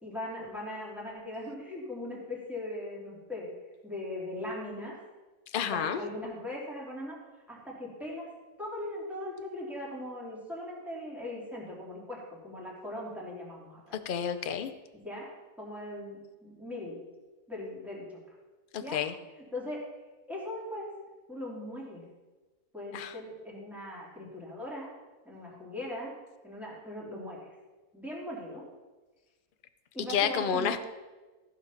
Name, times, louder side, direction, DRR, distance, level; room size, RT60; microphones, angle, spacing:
voice 1, 0.0-3.5 3.8-5.0 5.6-7.2 7.5-8.3 8.6-14.0 14.9-15.3 15.6-17.0 17.5-18.0 18.8-19.0 19.5-19.8 20.3-20.9 21.3-22.0 22.7-24.9 25.2-26.1 26.4-27.4 27.9-28.6 29.9-30.8, left 1 dB, ahead, -5 dB, 2.8 m, -39 dB
voice 2, 5.5-6.0 14.1-14.7 18.7-19.1 22.9-23.1 30.1-30.8, left 8 dB, 60° left, 10 dB, 0.5 m, -30 dB
14.5 x 5.2 x 5.7 m, 1.3 s
omnidirectional pair, 1.6 m